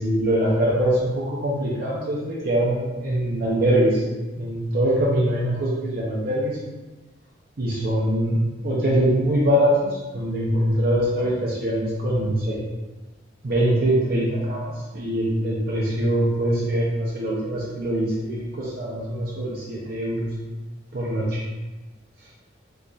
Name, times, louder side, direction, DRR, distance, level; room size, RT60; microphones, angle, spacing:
voice 1, 0.0-4.0 4.4-6.6 7.6-8.4 8.6-12.6 13.4-20.3 20.9-21.4, right 1 dB, 50° right, -5 dB, 0.6 m, -23 dB
3.9 x 3.1 x 2.3 m, 1.2 s
head